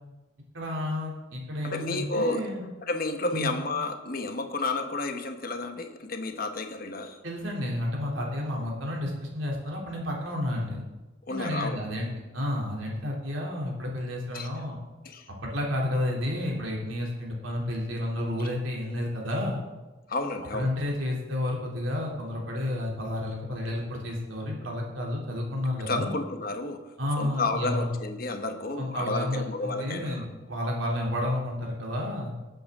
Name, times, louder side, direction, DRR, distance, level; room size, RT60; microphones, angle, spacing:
voice 1, 0.5-2.6 3.3-3.5 7.2-10.8 11.3-14.8 15.4-19.6 20.5-26.1 27.0-27.9 28.8-32.3, left 1 dB, 80° right, -2 dB, 2.9 m, -31 dB
voice 2, 1.6-2.5 2.9-7.2 11.3-11.8 14.3-14.5 15.0-15.2 20.1-20.7 25.9-30.2, left 3 dB, 50° left, 6 dB, 1.1 m, -31 dB
19.5 x 7.9 x 3.6 m, 1.1 s
head